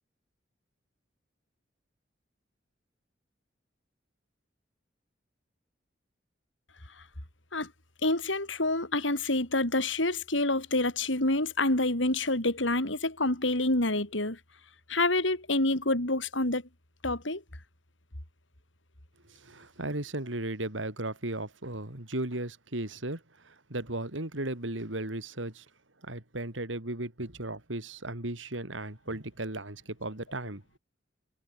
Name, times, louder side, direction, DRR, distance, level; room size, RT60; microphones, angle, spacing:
voice 1, 8.0-14.4 14.9-16.6 17.0-17.4, left 2 dB, 80° left, 5.3 m, -27 dB
voice 2, 19.3-25.7 26.0-30.6, right 1 dB, 85° right, 3.8 m, -36 dB
head